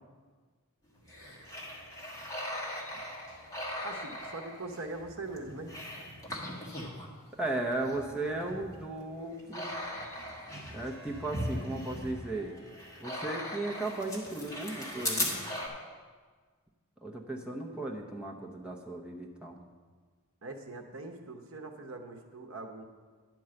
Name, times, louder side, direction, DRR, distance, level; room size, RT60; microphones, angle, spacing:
sound 1, 1.0-7.1 7.5-15.7, left 1 dB, 15° left, 1.5 m, -39 dB
voice 1, 3.8-5.7 20.4-22.8, right 2 dB, 65° right, 5 dB, 0.9 m, -42 dB
voice 2, 7.3-9.8 10.7-12.6 13.0-15.4 17.0-19.6, right 2 dB, 5° right, -1 dB, 0.8 m, -36 dB
11.0 x 4.6 x 7.7 m, 1.5 s
head